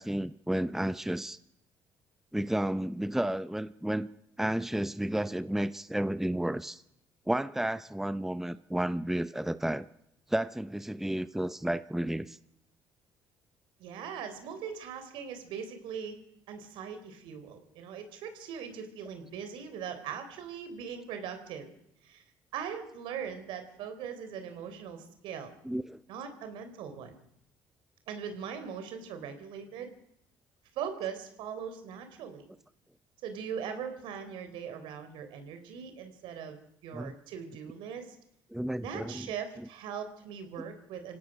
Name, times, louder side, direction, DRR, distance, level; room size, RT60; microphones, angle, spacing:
voice 1, 0.0-1.4 2.3-4.1 4.4-6.8 7.3-9.8 10.3-12.4 25.6-26.0 36.9-37.1 38.5-39.3, right 1 dB, 5° right, 14 dB, 0.8 m, -32 dB
voice 2, 13.8-16.2 16.5-21.7 22.0-22.2 22.5-25.5 26.1-27.2 28.1-29.9 30.7-32.5 33.2-38.1 38.8-41.2, right 7 dB, 75° right, 8 dB, 3.9 m, -40 dB
26.5 x 17.0 x 6.2 m, 0.77 s
supercardioid pair, 65°, 9 cm